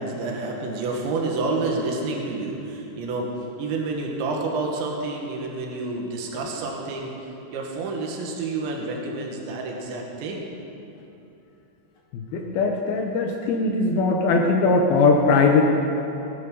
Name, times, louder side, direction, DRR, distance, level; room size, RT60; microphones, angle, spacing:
voice 1, 0.0-10.4, right 3 dB, 85° right, 0 dB, 3.9 m, -29 dB
voice 2, 12.1-15.6, left 4 dB, 70° left, 2 dB, 2.5 m, -20 dB
19.0 x 11.0 x 5.4 m, 2.8 s
omnidirectional pair, 5.1 m